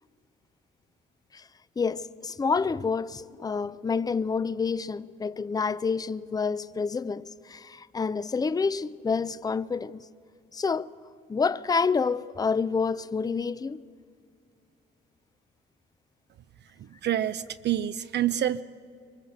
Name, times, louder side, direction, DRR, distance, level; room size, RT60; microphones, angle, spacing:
voice 1, 1.8-10.0 10.5-10.9 11.3-13.8, left 5 dB, 20° left, 0.5 m, -28 dB
voice 2, 17.0-18.6, right 11 dB, 60° right, 0.6 m, -27 dB
23.0 x 21.0 x 8.1 m
cardioid pair, 90°, 20 cm